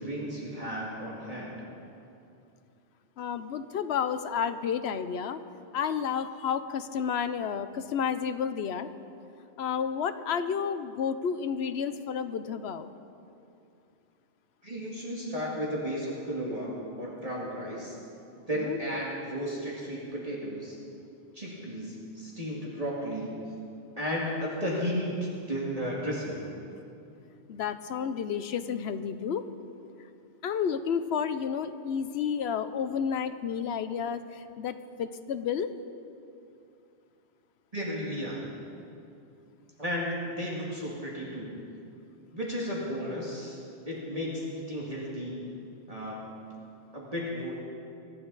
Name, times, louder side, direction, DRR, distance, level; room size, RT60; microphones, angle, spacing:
voice 1, 0.0-1.6 14.6-18.0 18.4-20.8 21.3-23.4 24.0-25.2 25.5-26.4 37.7-38.4 39.8-41.5 42.3-45.4 45.9-46.3 46.9-47.6, equal, 30° right, -5 dB, 2.2 m, -34 dB
voice 2, 3.2-5.4 5.7-8.9 9.6-12.9 18.5-18.8 27.5-29.4 30.4-35.7, left 7 dB, 65° left, 11 dB, 0.9 m, -31 dB
24.0 x 11.5 x 4.0 m, 2.6 s
omnidirectional pair, 1.2 m